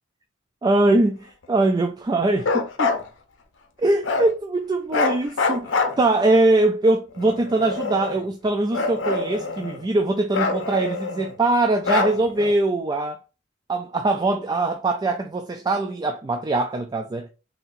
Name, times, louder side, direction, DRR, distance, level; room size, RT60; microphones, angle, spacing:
voice 1, 0.6-3.0 3.8-13.2 13.7-17.3, right 2 dB, 20° right, 0.3 m, -22 dB
Bark, 2.4-3.0 4.0-4.3 4.9-6.4 7.2-8.2 8.7-9.8 10.3-11.3 11.8-12.5, left 3 dB, 70° left, 0.6 m, -25 dB
4.0 x 2.7 x 2.5 m
head